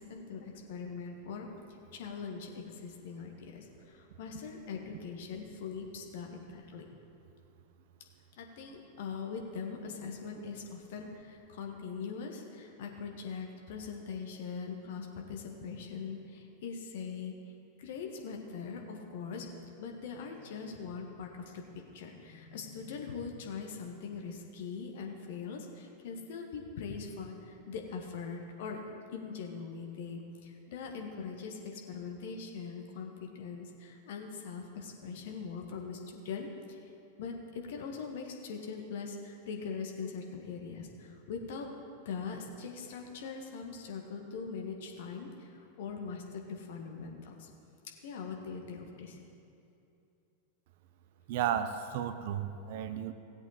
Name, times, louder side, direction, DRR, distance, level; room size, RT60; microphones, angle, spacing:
voice 1, 0.0-1.5 1.9-6.9 8.4-17.4 17.8-19.5 19.8-36.8 37.2-41.7 42.0-47.5 48.0-49.2, left 5 dB, 55° left, 2 dB, 1.5 m, -42 dB
voice 2, 51.3-53.1, right 9 dB, 50° right, 11 dB, 0.6 m, -33 dB
16.5 x 7.9 x 4.2 m, 2.7 s
figure-of-eight pair, 90°, 0 cm